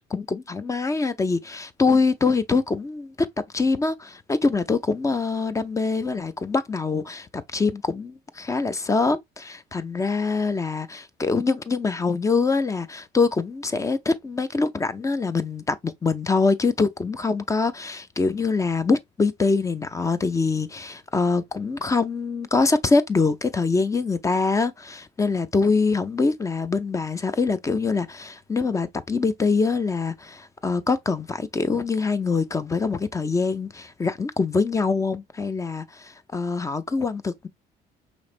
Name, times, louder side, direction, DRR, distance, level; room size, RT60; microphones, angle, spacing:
voice 1, 0.1-3.3 3.5-37.5, left 4 dB, 20° left, 0.5 m, -24 dB
5.1 x 3.2 x 2.4 m
cardioid pair, 110°, 17 cm